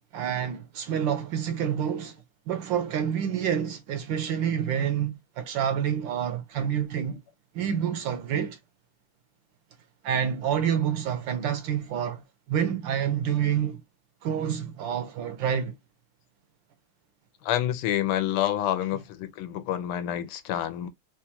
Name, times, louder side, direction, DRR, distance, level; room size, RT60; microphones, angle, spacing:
voice 1, 0.1-2.2 2.5-7.2 7.5-8.6 10.0-13.8 14.2-15.8, right 8 dB, 75° right, 1.2 m, -28 dB
voice 2, 17.4-20.9, left 12 dB, 90° left, 1.5 m, -28 dB
4.2 x 2.3 x 2.8 m
omnidirectional pair, 2.4 m